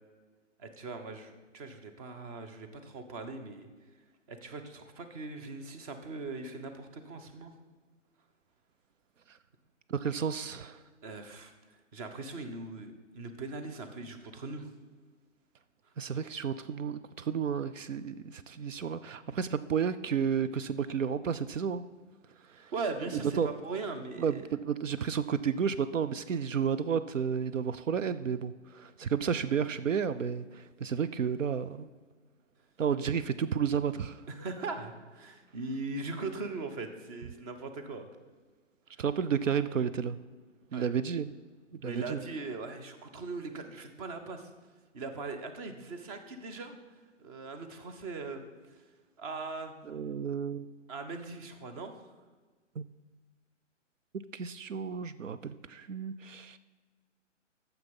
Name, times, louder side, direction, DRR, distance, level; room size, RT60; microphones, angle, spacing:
voice 1, 0.6-3.7 4.3-7.5 11.0-14.7 22.7-24.5 34.3-38.1 38.9-39.0 40.7-40.9 41.8-44.5 44.9-46.7 47.2-48.4 48.7-48.8 49.2-49.7 50.9-51.9, right 3 dB, 30° right, 7 dB, 1.0 m, -40 dB
voice 2, 9.9-10.8 16.0-21.8 22.5-22.7 23.4-23.5 24.2-31.9 32.8-34.2 39.0-40.2 40.7-41.3 41.8-42.2 49.9-50.7 52.8-52.9 54.3-56.6, right 7 dB, 80° right, 13 dB, 0.5 m, -32 dB
9.3 x 7.1 x 5.4 m, 1.4 s
figure-of-eight pair, 130°, 38 cm